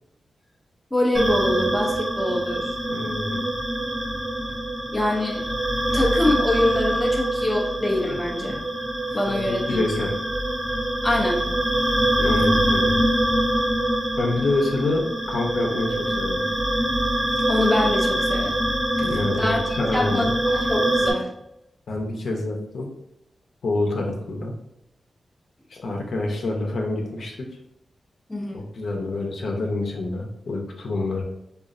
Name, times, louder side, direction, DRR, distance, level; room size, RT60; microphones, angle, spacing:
voice 1, 0.9-2.7 4.9-5.4 5.9-8.7 9.1-9.8 11.0-11.5 17.5-18.6 19.4-21.3 28.3-28.6, left 1 dB, 10° left, -2 dB, 0.5 m, -24 dB
sound 1, 1.1-21.1, right 1 dB, 20° right, 0.8 m, -24 dB
voice 2, 2.9-3.5 9.3-10.1 12.2-13.0 14.2-16.5 19.0-20.3 21.9-22.9 23.6-24.5 25.7-27.5 28.5-31.2, left 2 dB, 65° left, 1 dB, 0.7 m, -27 dB
4.9 x 2.4 x 2.5 m, 0.84 s
wide cardioid pair, 180°, 0 cm